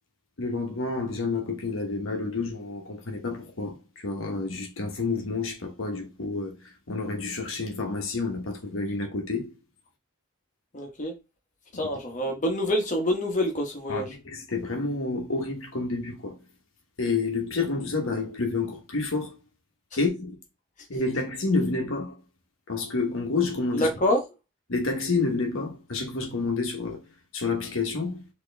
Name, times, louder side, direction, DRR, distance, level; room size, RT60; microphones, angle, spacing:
voice 1, 0.4-9.5 11.7-11.9 13.9-16.4 17.0-19.3 20.0-20.4 20.9-22.1 22.7-23.9 24.7-27.0 27.3-28.2, left 3 dB, 85° left, 1.1 m, -29 dB
voice 2, 10.7-11.1 11.7-14.1 23.7-24.2, left 1 dB, 40° left, 1.1 m, -26 dB
4.4 x 3.0 x 3.3 m
head